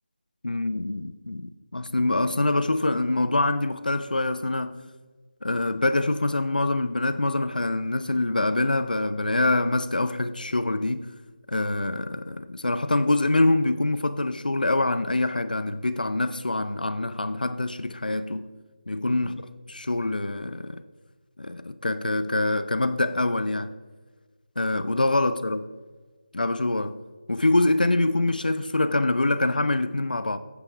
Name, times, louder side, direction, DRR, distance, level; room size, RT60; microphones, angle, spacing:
voice 1, 0.4-4.8 5.4-11.1 11.5-18.5 18.9-19.3 19.7-20.8 21.4-23.7 24.6-25.6 26.3-27.0 27.3-30.4, left 2 dB, 80° left, 0.6 m, -25 dB
12.0 x 8.2 x 3.4 m
figure-of-eight pair, 165°, 5 cm